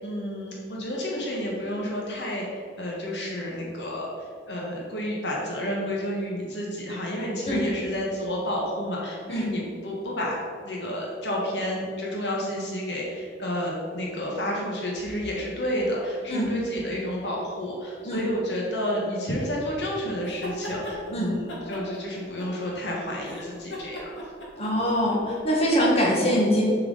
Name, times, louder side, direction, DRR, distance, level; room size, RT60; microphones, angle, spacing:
voice 1, 0.0-10.4 10.6-24.3, equal, 70° left, -3 dB, 1.5 m, -30 dB
sound 1, 20.2-21.0 21.5-22.9 23.2-25.4, left 1 dB, 90° left, 1.8 m, -38 dB
voice 2, 24.6-26.7, equal, 35° left, -4 dB, 1.8 m, -23 dB
7.3 x 4.7 x 6.5 m, 2.2 s
head